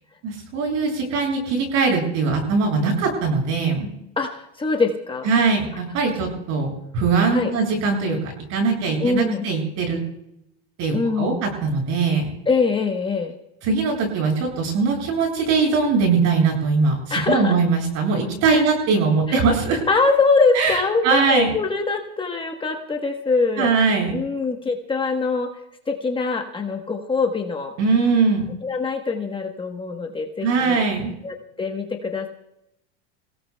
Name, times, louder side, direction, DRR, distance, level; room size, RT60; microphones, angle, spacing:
voice 1, 0.2-3.9 5.2-10.0 10.8-12.3 13.6-19.8 20.5-21.5 23.6-24.2 27.8-28.5 30.4-31.1, right 4 dB, 55° right, 1 dB, 7.7 m, -21 dB
voice 2, 4.2-5.3 7.3-7.5 9.0-9.4 10.9-11.4 12.4-13.3 17.1-17.5 18.5-18.6 19.3-19.4 19.9-23.7 24.1-25.5 25.9-27.7 28.6-30.8 31.2-32.3, left 4 dB, 15° left, 3 dB, 1.2 m, -23 dB
28.5 x 17.0 x 2.3 m, 0.82 s
supercardioid pair, 125°, 33 cm